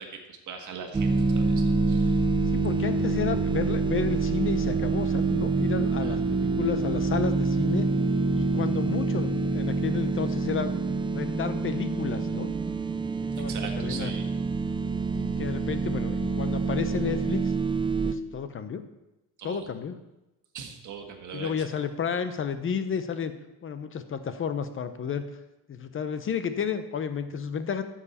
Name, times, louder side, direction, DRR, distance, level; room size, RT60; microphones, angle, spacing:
voice 1, 0.0-2.3 6.0-6.2 13.4-14.3 19.4-19.7 20.5-21.7, right 6 dB, 45° right, 4 dB, 1.7 m, -41 dB
sound 1, 0.9-18.1, right 4 dB, 15° right, 0.3 m, -26 dB
voice 2, 2.5-7.9 8.3-10.8 11.1-12.5 13.4-14.1 15.1-17.5 18.0-18.8 19.4-20.0 21.3-23.3 23.6-25.2 25.7-27.8, left 7 dB, 30° left, 10 dB, 0.8 m, -31 dB
12.0 x 7.4 x 4.3 m, 0.97 s
cardioid pair, 125°, 42 cm